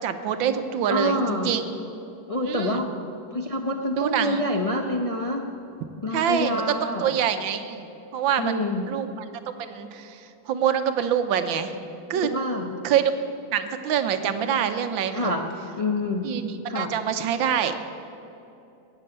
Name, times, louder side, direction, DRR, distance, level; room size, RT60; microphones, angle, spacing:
voice 1, 0.0-1.6 2.5-2.8 4.0-4.4 6.1-8.6 8.9-9.2 9.6-11.7 12.1-12.3 12.8-13.1 13.5-15.3 16.2-17.7, right 8 dB, 85° right, 9 dB, 1.6 m, -25 dB
voice 2, 0.9-1.5 2.3-2.9 3.3-5.4 6.0-7.1 8.3-8.9 12.1-12.8 15.1-15.4 15.8-16.3 16.7-16.9, left 1 dB, 35° left, 2 dB, 0.5 m, -27 dB
15.5 x 8.9 x 8.0 m, 2.9 s
omnidirectional pair, 2.1 m